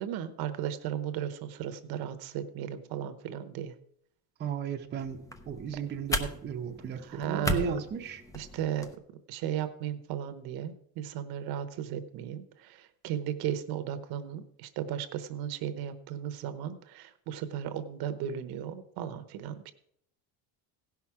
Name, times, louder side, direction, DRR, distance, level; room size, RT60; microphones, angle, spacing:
voice 1, 0.0-3.7 7.0-7.7 8.3-8.9 9.3-19.7, right 10 dB, 65° right, 11 dB, 1.0 m, -35 dB
voice 2, 4.4-8.2, right 6 dB, 25° right, 2 dB, 0.7 m, -35 dB
light switch, 5.0-9.0, left 1 dB, 10° left, 0.5 m, -36 dB
16.5 x 6.0 x 4.7 m, 0.68 s
cardioid pair, 155°, 40 cm